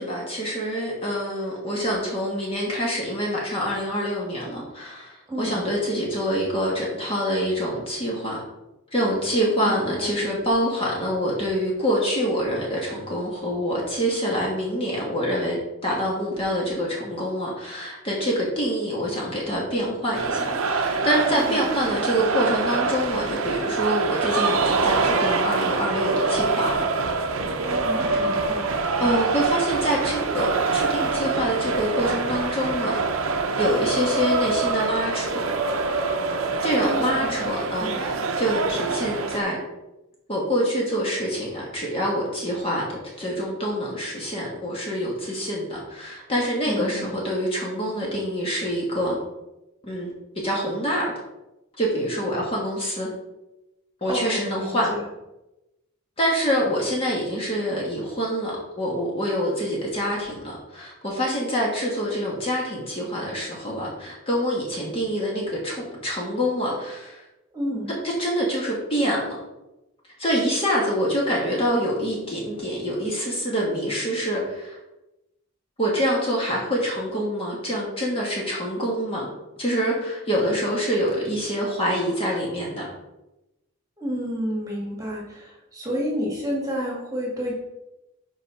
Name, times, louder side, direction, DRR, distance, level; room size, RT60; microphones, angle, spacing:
voice 1, 0.0-8.4 8.9-26.9 28.1-28.2 29.0-33.0 33.6-35.5 36.6-39.6 40.3-49.2 49.8-50.1 50.4-51.0 51.8-53.1 54.0-54.9 56.2-67.2 68.0-69.4 70.2-74.8 75.8-79.3 79.6-82.9, equal, 25° left, -3 dB, 1.5 m, -26 dB
voice 2, 5.3-5.6 9.6-10.2 21.3-21.6 21.9-22.0 27.6-28.7 36.8-37.9 46.7-47.1 54.0-55.0 67.5-67.9 84.0-87.6, equal, 15° right, -4 dB, 1.8 m, -30 dB
sound 1, 20.1-39.4, right 4 dB, 70° right, 0.7 m, -25 dB
5.5 x 5.0 x 5.6 m, 0.96 s
head